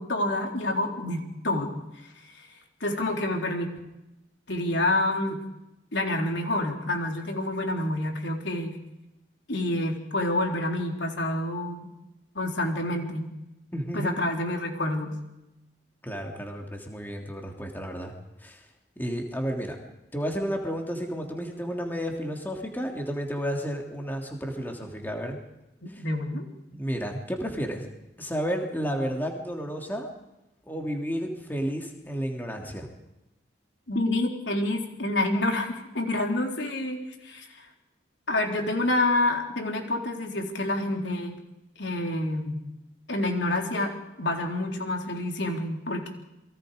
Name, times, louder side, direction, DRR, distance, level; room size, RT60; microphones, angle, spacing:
voice 1, 0.0-1.8 2.0-2.5 2.8-3.7 4.5-5.4 5.9-8.8 9.5-11.9 12.3-13.3 13.9-15.1 25.8-26.5 33.9-37.7 38.3-41.4 41.8-42.6 43.1-46.1, left 1 dB, 85° left, 2 dB, 4.0 m, -28 dB
voice 2, 13.7-14.2 16.0-18.1 18.4-18.6 19.0-19.8 20.1-25.4 25.9-26.0 26.7-27.9 28.2-30.1 30.7-32.9, equal, 10° left, 1 dB, 3.1 m, -32 dB
29.0 x 23.0 x 5.2 m, 0.93 s
head